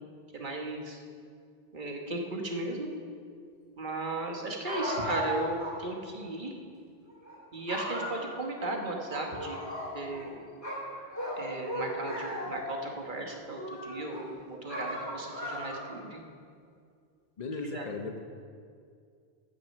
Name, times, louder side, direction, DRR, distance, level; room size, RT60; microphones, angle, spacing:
voice 1, 0.3-1.0 1.7-2.9 3.8-6.5 7.5-9.6 9.9-10.3 11.4-16.2 17.7-17.9, right 2 dB, 50° right, 1 dB, 1.4 m, -36 dB
sound 1, 4.6-5.8 6.1-6.2 7.1-7.3 7.7-8.7 9.1-10.3 10.6-12.8 13.4-14.2 14.7-16.0, equal, 15° left, 3.0 m, -36 dB
voice 2, 17.4-18.2, left 3 dB, 45° left, 6 dB, 0.9 m, -36 dB
10.0 x 6.4 x 7.5 m, 2.2 s
omnidirectional pair, 1.1 m